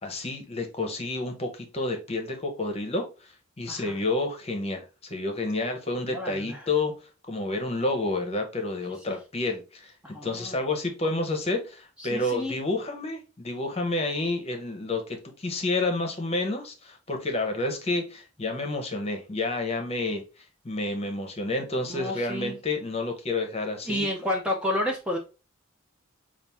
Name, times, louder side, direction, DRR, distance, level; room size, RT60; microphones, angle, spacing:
voice 1, 0.0-3.3 3.6-6.9 7.3-20.2 20.6-24.1, left 2 dB, 30° left, 4 dB, 0.9 m, -29 dB
voice 2, 6.1-6.7 8.9-9.2 10.0-10.6 12.0-12.6 21.9-22.6 23.9-25.2, left 1 dB, 5° right, 0 dB, 0.6 m, -31 dB
5.7 x 2.5 x 3.5 m, 0.32 s
head